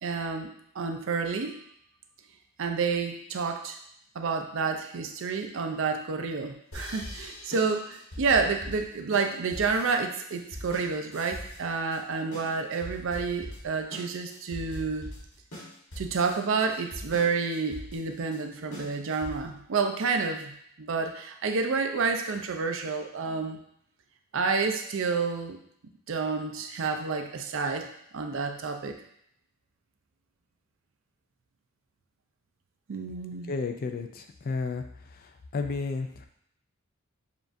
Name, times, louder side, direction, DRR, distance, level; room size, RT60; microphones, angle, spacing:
voice 1, 0.0-1.6 2.6-3.8 4.1-15.1 16.0-23.6 24.3-25.6 26.1-29.0 32.9-33.5, right 4 dB, 60° right, 5 dB, 0.5 m, -29 dB
sound 1, 6.7-19.6, equal, 65° left, 1.3 m, -42 dB
voice 2, 33.5-34.8 35.5-36.3, left 4 dB, 40° left, 6 dB, 0.3 m, -32 dB
6.9 x 2.4 x 2.6 m, 0.71 s
head